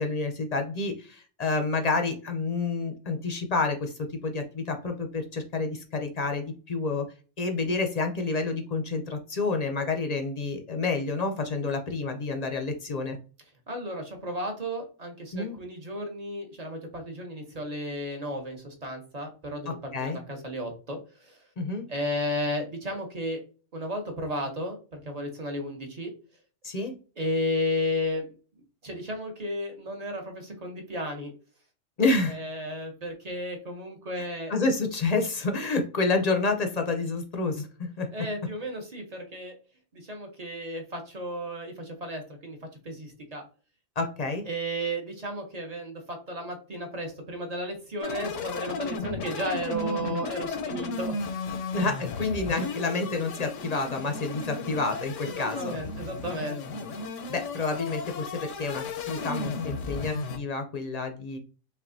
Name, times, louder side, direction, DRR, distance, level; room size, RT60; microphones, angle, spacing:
voice 1, 0.0-7.1 7.4-13.2 15.3-15.6 19.7-20.2 21.6-21.9 26.6-26.9 32.0-32.4 34.2-34.3 34.5-38.1 44.0-44.5 51.7-55.8 57.3-61.4, left 3 dB, 45° left, 5 dB, 0.5 m, -29 dB
voice 2, 13.7-21.4 21.9-23.4 23.7-26.1 27.2-28.3 28.8-31.3 32.3-34.5 38.1-39.5 39.9-42.6 42.8-43.4 44.5-51.5 55.3-56.6, equal, 35° right, 3 dB, 0.8 m, -33 dB
sound 1, 48.0-60.4, left 4 dB, 90° left, 1.0 m, -34 dB
5.6 x 2.4 x 2.6 m, 0.37 s
omnidirectional pair, 1.3 m